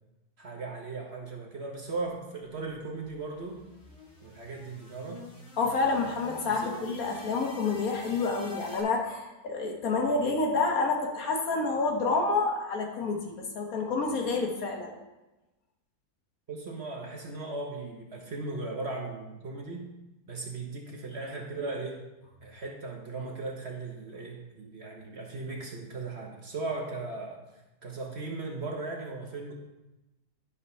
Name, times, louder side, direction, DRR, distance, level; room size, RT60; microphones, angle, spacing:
voice 1, 0.4-3.6 4.2-5.2 6.4-6.7 16.5-19.9 20.3-22.0 22.4-27.4 27.8-29.5, right 3 dB, 45° right, 0 dB, 1.2 m, -37 dB
sound 1, 2.4-8.8, left 2 dB, 50° left, 1.9 m, -47 dB
voice 2, 5.6-14.9, left 3 dB, 65° left, 1 dB, 1.7 m, -28 dB
11.0 x 4.1 x 5.5 m, 1.0 s
omnidirectional pair, 1.7 m